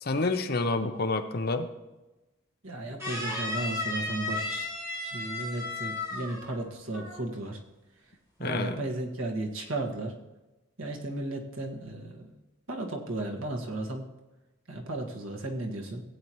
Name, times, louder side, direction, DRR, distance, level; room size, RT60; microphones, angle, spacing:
voice 1, 0.0-1.7 8.4-8.8, left 3 dB, 50° left, 7 dB, 0.8 m, -28 dB
voice 2, 2.6-4.7 5.0-7.6 8.4-10.2 10.8-12.4 12.7-14.1 14.7-16.0, right 1 dB, 85° right, 1 dB, 1.7 m, -34 dB
sound 1, 3.0-6.6 6.9-7.3, left 2 dB, 15° right, 4.1 m, -34 dB
16.5 x 8.7 x 3.1 m, 1.1 s
head